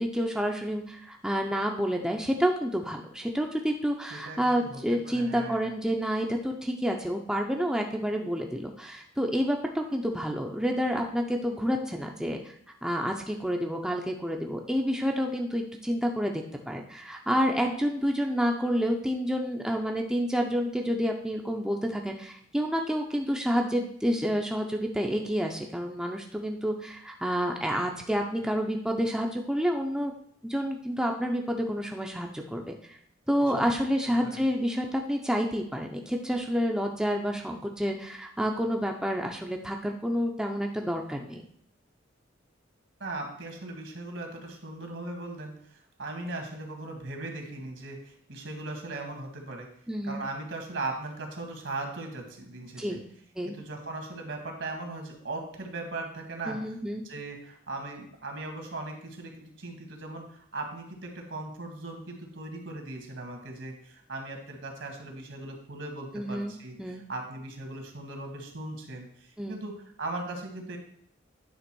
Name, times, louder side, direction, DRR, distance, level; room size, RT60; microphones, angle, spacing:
voice 1, 0.0-12.4 12.8-30.1 30.4-33.0 33.3-41.5 49.9-50.2 52.8-53.0 53.4-53.5 56.5-57.0 66.1-67.0 69.4-69.6, equal, 5° right, 1 dB, 0.6 m, -29 dB
voice 2, 4.1-5.7 33.4-33.5 34.1-34.4 43.0-49.7 50.0-53.0 53.5-56.6 57.0-70.8, right 2 dB, 70° right, 3 dB, 1.8 m, -38 dB
9.6 x 3.5 x 6.1 m, 0.64 s
head